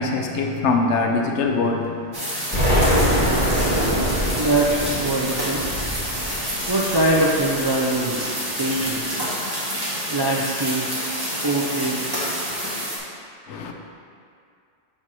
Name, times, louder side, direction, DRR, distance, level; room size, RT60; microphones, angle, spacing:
voice 1, 0.0-2.1 13.5-13.7, left 3 dB, 80° left, 2 dB, 1.0 m, -23 dB
sound 1, 2.1-13.0, equal, 20° right, 1.2 m, -28 dB
Explosion, 2.5-7.4, equal, 35° left, 1.3 m, -23 dB
voice 2, 4.3-5.6 6.7-8.3 8.6-9.1 10.1-11.1 11.4-12.3, right 2 dB, 40° right, -4 dB, 0.3 m, -23 dB
5.9 x 4.3 x 4.7 m, 2.3 s
omnidirectional pair, 1.2 m